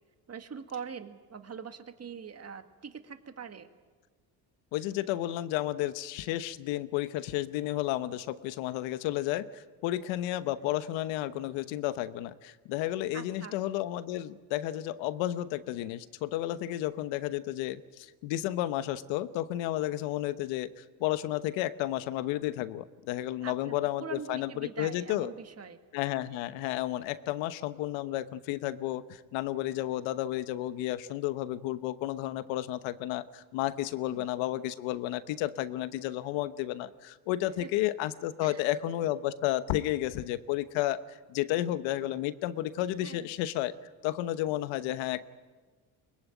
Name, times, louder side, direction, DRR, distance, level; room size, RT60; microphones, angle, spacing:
voice 1, 0.3-3.7 13.1-13.6 23.4-25.8 34.1-34.3 37.6-37.7 38.4-38.6 43.0-43.3, right 6 dB, 35° right, 8 dB, 1.9 m, -43 dB
voice 2, 4.7-25.3 25.9-43.7 44.0-45.3, left 14 dB, 85° left, 14 dB, 1.1 m, -32 dB
22.5 x 20.0 x 9.2 m, 1.4 s
supercardioid pair, 70°, 44 cm